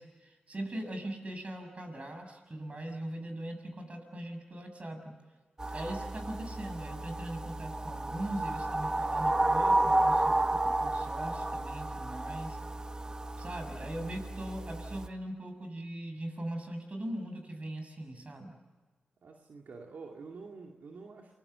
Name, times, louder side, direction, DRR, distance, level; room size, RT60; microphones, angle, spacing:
voice 1, 0.0-5.1 5.7-12.6 12.8-13.0 13.4-18.6, right 1 dB, 45° right, 5 dB, 6.9 m, -40 dB
sound 1, 5.6-15.1, right 2 dB, 25° right, 1.2 m, -31 dB
voice 2, 19.2-21.4, right 4 dB, 75° right, 1 dB, 2.4 m, -47 dB
28.5 x 21.0 x 6.9 m, 1.4 s
cardioid pair, 50°, 3 cm